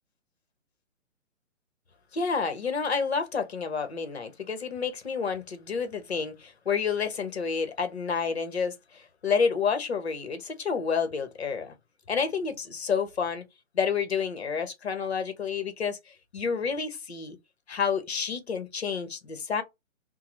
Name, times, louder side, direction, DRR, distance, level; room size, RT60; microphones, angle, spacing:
voice 1, 2.1-11.7 12.1-13.4 13.7-17.4 17.7-19.6, left 6 dB, 50° left, 0.9 m, -29 dB
3.6 x 2.0 x 3.0 m
hypercardioid pair, 170°, 42 cm